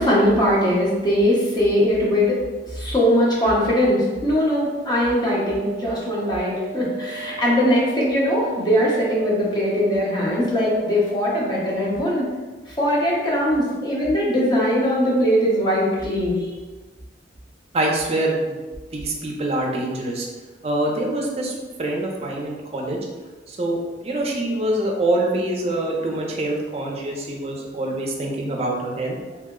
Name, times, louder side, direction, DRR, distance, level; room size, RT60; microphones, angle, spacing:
voice 1, 0.0-2.4 2.7-12.2 12.8-16.5, equal, 25° left, -5 dB, 0.8 m, -20 dB
sound 1, 5.2-12.1, right 4 dB, ahead, 0.9 m, -36 dB
voice 2, 17.7-18.6 18.9-20.3 20.6-21.5 21.8-23.0 23.6-23.8 24.0-29.2, right 1 dB, 35° right, 0 dB, 0.5 m, -25 dB
2.9 x 2.0 x 3.6 m, 1.3 s
head